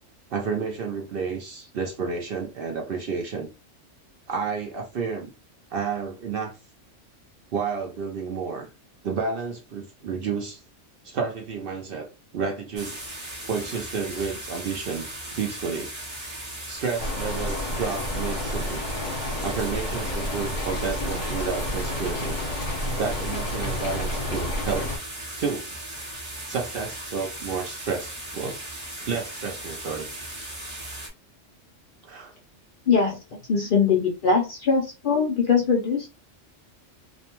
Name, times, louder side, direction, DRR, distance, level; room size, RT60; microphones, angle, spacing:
voice 1, 0.3-3.5 4.3-5.3 5.7-6.5 7.5-8.7 9.0-10.6 11.0-13.0 13.4-15.9 16.7-18.8 19.4-22.4 23.0-25.0 25.4-25.7 26.5-28.6 29.0-30.1 32.0-32.3, right 5 dB, 60° right, 0.6 m, -31 dB
sound 1, 12.8-31.1, right 1 dB, 35° right, 0.8 m, -37 dB
Rain, 17.0-25.0, left 1 dB, 40° left, 1.2 m, -30 dB
voice 2, 32.9-33.2 33.5-36.1, left 5 dB, 60° left, 0.5 m, -21 dB
2.6 x 2.1 x 2.8 m
omnidirectional pair, 1.3 m